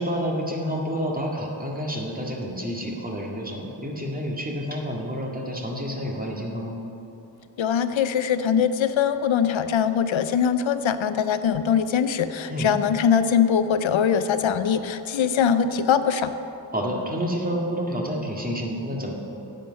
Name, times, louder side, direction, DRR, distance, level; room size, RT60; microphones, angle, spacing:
voice 1, 0.0-6.8 12.5-12.7 16.7-19.1, equal, 20° right, -1 dB, 1.9 m, -29 dB
voice 2, 7.6-16.3, left 7 dB, 85° left, 11 dB, 0.6 m, -22 dB
10.0 x 8.0 x 6.3 m, 3.0 s
wide cardioid pair, 65°, 45 cm